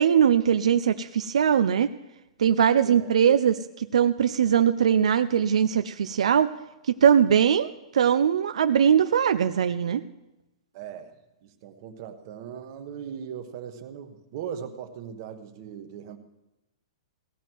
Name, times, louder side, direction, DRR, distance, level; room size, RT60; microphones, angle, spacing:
voice 1, 0.0-1.9 2.4-6.5 6.9-10.0, right 8 dB, 80° right, 10 dB, 0.6 m, -21 dB
voice 2, 10.7-11.1 11.4-16.2, right 8 dB, 35° right, 6 dB, 1.2 m, -39 dB
17.0 x 11.0 x 4.6 m, 0.98 s
hypercardioid pair, 175°, 3 cm